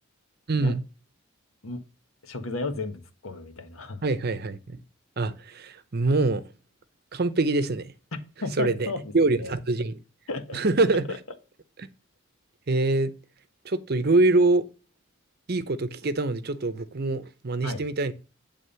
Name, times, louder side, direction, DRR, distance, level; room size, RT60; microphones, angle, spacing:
voice 1, 0.5-0.8 4.0-4.8 5.2-6.4 7.1-7.9 8.6-8.9 9.1-10.0 10.5-11.0 12.7-13.1 13.6-14.7 15.5-18.1, right 2 dB, 50° right, 0.7 m, -24 dB
voice 2, 2.2-4.0 8.1-9.0 9.4-9.5 10.3-10.6 11.1-11.2 17.6-17.8, left 3 dB, 85° left, 1.4 m, -33 dB
9.3 x 3.6 x 6.8 m
head